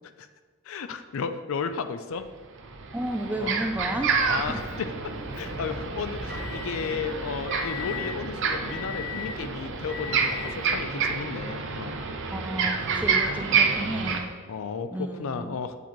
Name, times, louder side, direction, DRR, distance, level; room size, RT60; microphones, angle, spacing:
voice 1, 0.7-2.3 3.4-3.5 4.3-4.9 5.4-12.0 14.5-15.8, left 5 dB, 65° left, 10 dB, 0.4 m, -33 dB
sound 1, 2.1-2.2 2.6-14.2, right 5 dB, 60° right, 0.6 m, -29 dB
voice 2, 2.9-4.6 12.3-14.3 14.9-15.6, right 1 dB, 5° right, 5 dB, 0.3 m, -32 dB
Motor vehicle (road) / Engine, 4.6-10.7, left 6 dB, 35° left, 1.7 m, -39 dB
7.9 x 4.3 x 3.1 m, 1.5 s
head